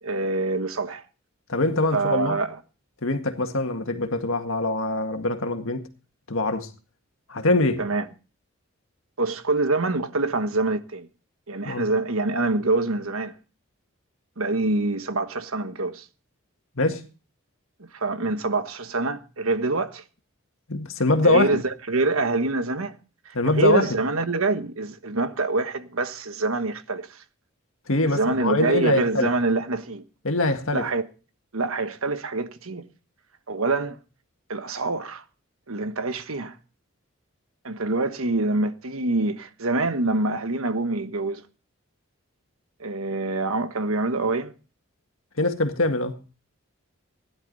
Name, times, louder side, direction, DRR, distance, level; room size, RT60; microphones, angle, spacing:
voice 1, 0.0-1.0 1.9-2.6 7.8-8.0 9.2-11.1 11.5-13.3 14.4-16.0 17.9-20.0 21.2-22.9 23.2-27.2 28.1-30.0 30.7-31.0 31.5-32.9 33.5-34.0 34.5-35.2 35.7-36.6 37.6-41.4 42.8-44.5, right 3 dB, 80° right, 1.3 m, -25 dB
voice 2, 1.5-2.4 3.0-5.9 6.3-6.7 7.3-7.8 11.7-11.9 16.8-17.0 20.7-21.6 23.3-24.0 27.9-29.3 30.2-30.9 45.4-46.2, left 2 dB, 70° left, 1.9 m, -23 dB
17.0 x 11.0 x 4.0 m
head